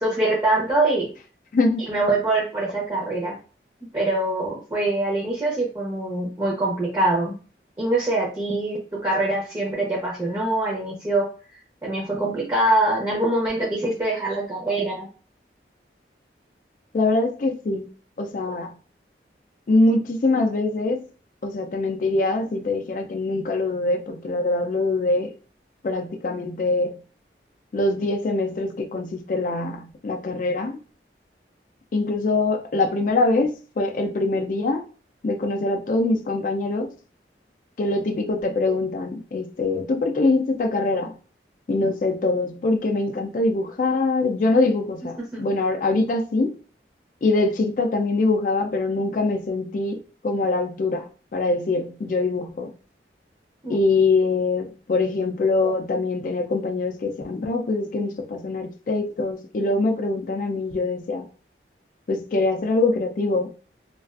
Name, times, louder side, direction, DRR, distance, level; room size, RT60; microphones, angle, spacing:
voice 1, 0.0-1.1 1.9-3.4 3.9-7.4 7.8-11.3 11.8-15.1 45.3-45.4 53.6-53.8, right 2 dB, 20° right, 0.6 m, -24 dB
voice 2, 1.5-1.8 16.9-17.9 18.2-18.7 19.7-21.0 21.4-25.3 25.8-27.0 27.7-30.8 31.9-34.8 35.2-36.9 37.8-41.2 41.7-46.6 47.2-52.7 53.7-61.3 62.1-63.5, left 2 dB, 45° left, 0.3 m, -23 dB
2.4 x 2.3 x 2.3 m
head